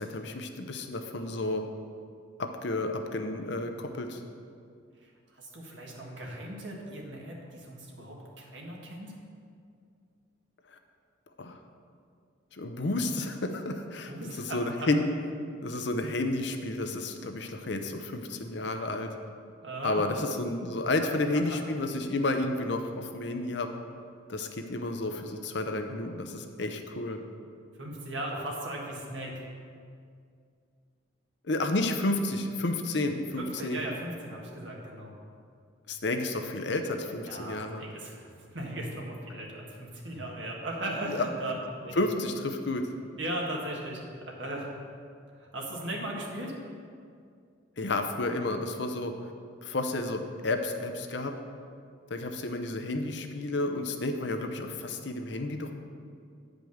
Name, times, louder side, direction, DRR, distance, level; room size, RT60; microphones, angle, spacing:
voice 1, 0.0-1.6 2.4-4.2 11.4-11.6 12.6-15.1 15.6-19.1 19.8-23.7 24.3-27.2 31.4-33.8 35.9-37.8 41.1-41.3 42.0-42.8 47.8-49.1 49.6-51.3 52.1-55.7, left 2 dB, 60° left, 5 dB, 0.7 m, -31 dB
voice 2, 5.0-9.1 14.1-14.9 19.6-20.0 27.8-29.4 33.4-35.1 37.3-41.5 41.8-41.9 43.2-44.7 45.4-46.5, right 1 dB, 70° right, -2 dB, 1.6 m, -37 dB
9.0 x 5.2 x 6.4 m, 2.3 s
head